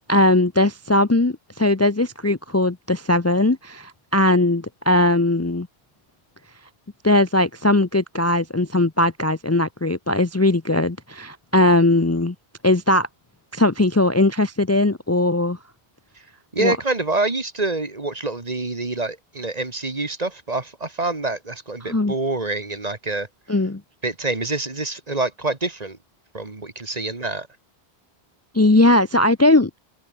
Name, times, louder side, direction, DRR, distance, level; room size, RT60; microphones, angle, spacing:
voice 1, 0.1-5.7 7.0-12.3 12.6-13.1 13.5-15.6 16.6-16.8 21.9-22.1 23.5-23.8 28.5-29.7, left 2 dB, 15° left, 0.7 m, -19 dB
voice 2, 16.5-23.3 24.0-26.0 26.3-27.5, right 2 dB, 40° right, 2.0 m, -26 dB
omnidirectional pair, 1.0 m